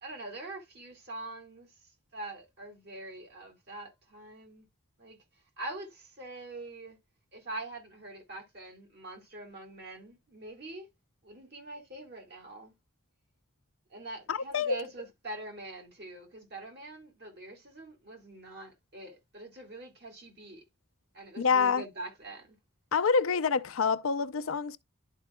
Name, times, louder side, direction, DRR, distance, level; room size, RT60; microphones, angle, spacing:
voice 1, 0.0-1.7 2.1-4.6 5.0-5.2 5.6-7.0 7.3-10.9 11.2-12.7 13.9-20.6 21.1-22.5, right 2 dB, 50° right, 2.1 m, -44 dB
voice 2, 14.3-14.8 21.4-21.8 22.9-24.8, left 5 dB, 85° left, 0.5 m, -27 dB
11.5 x 4.6 x 2.3 m
head